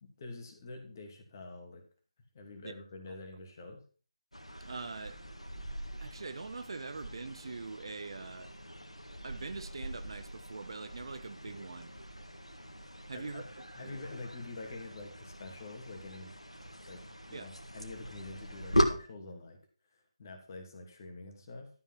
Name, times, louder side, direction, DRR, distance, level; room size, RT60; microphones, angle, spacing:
voice 1, 0.0-1.8 2.3-3.8 13.1-13.4 13.7-16.3 16.9-17.0 17.3-19.6 20.2-21.7, left 3 dB, 35° left, 2.6 m, -46 dB
sound 1, 4.3-18.9, equal, 90° left, 1.8 m, -39 dB
voice 2, 4.6-5.2 6.0-8.5 9.2-11.9 13.1-13.4 13.8-14.0 17.3-17.5, right 4 dB, 50° right, 0.8 m, -43 dB
12.5 x 5.6 x 6.0 m
figure-of-eight pair, 150°, 3 cm